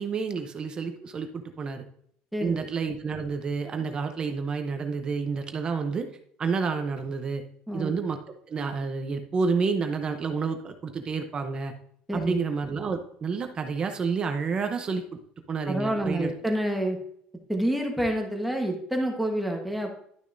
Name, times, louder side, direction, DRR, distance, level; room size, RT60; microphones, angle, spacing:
voice 1, 0.0-1.8 2.4-6.1 6.4-7.4 7.7-8.2 8.5-11.7 12.1-15.2 15.5-16.3, right 5 dB, 25° right, 6 dB, 0.7 m, -29 dB
voice 2, 2.3-2.7 7.7-7.9 12.1-12.4 15.7-17.0 17.5-19.9, right 1 dB, ahead, 1 dB, 1.3 m, -28 dB
11.5 x 6.2 x 2.6 m, 0.67 s
cardioid pair, 160°, 3 cm